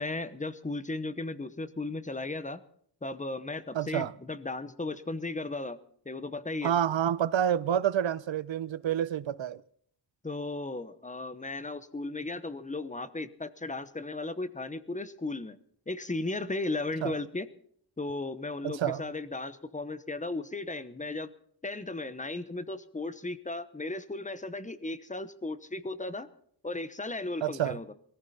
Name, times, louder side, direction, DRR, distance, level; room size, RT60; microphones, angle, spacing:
voice 1, 0.0-2.6 3.0-5.8 6.0-6.7 10.2-15.6 15.9-17.5 18.0-21.3 21.6-26.3 26.6-27.9, left 2 dB, 15° left, 0.9 m, -35 dB
voice 2, 3.7-4.1 6.6-9.6 17.0-17.2 18.6-19.1 27.4-27.8, right 10 dB, 85° right, 0.8 m, -28 dB
21.5 x 14.5 x 4.2 m
wide cardioid pair, 160°, 44 cm